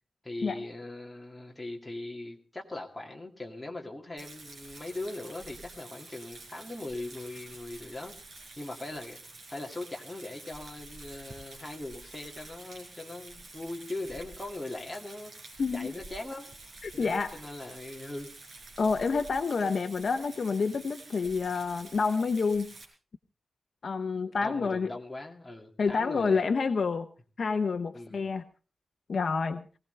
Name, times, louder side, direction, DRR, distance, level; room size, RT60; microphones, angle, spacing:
voice 1, 0.2-8.2 8.6-9.2 9.5-15.3 15.7-16.5 16.9-18.3 24.4-26.4 27.9-28.2, left 2 dB, 10° left, 0 dB, 2.2 m, -40 dB
Rain, 4.2-22.8, right 2 dB, 55° right, 4.8 m, -49 dB
voice 2, 15.6-15.9 16.8-17.3 18.8-22.7 23.8-24.9 25.8-27.1 27.4-28.4 29.1-29.6, left 4 dB, 50° left, 8 dB, 0.8 m, -28 dB
20.0 x 17.0 x 3.3 m, 0.36 s
wide cardioid pair, 175°, 0 cm